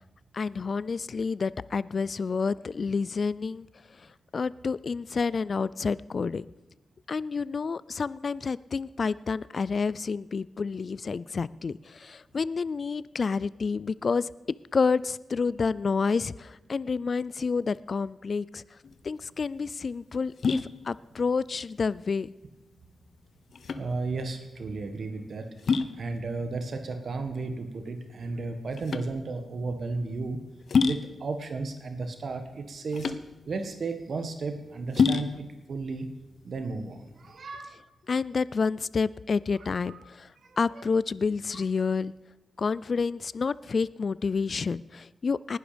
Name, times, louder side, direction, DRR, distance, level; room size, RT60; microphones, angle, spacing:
voice 1, 0.3-3.7 4.3-6.5 7.1-14.3 14.7-18.6 19.0-22.3 38.1-40.3 40.6-42.1 42.6-45.6, left 5 dB, 50° left, 19 dB, 0.4 m, -29 dB
sound 1, 18.8-37.4, left 5 dB, 70° left, 0.8 m, -31 dB
voice 2, 23.7-30.4 30.8-33.2 33.5-36.1 36.4-37.7 39.5-40.0 40.4-40.9 41.5-41.6, right 3 dB, 65° right, 6 dB, 1.7 m, -34 dB
19.5 x 11.5 x 5.2 m, 1.0 s
wide cardioid pair, 90°, 0 cm